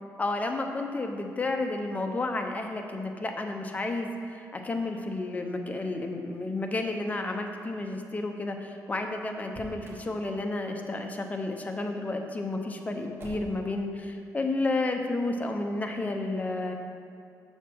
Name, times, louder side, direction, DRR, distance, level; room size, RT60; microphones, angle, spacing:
voice 1, 0.2-16.7, left 2 dB, 25° left, 4 dB, 0.7 m, -31 dB
Motor vehicle (road), 9.4-10.1 13.2-13.7, right 1 dB, 35° right, 1.5 m, -45 dB
7.0 x 6.6 x 4.6 m, 2.6 s
cardioid pair, 110°, 7 cm